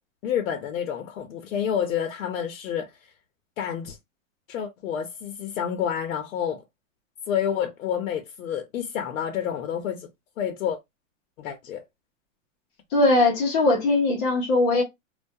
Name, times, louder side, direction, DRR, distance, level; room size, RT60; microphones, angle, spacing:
voice 1, 0.2-2.9 3.6-4.0 4.5-6.6 7.3-10.1 10.4-10.8 11.4-11.8, left 9 dB, 80° left, 0.6 m, -29 dB
voice 2, 12.9-14.8, left 2 dB, 25° left, 0.5 m, -20 dB
2.2 x 2.1 x 2.6 m
hypercardioid pair, 150°, 40 cm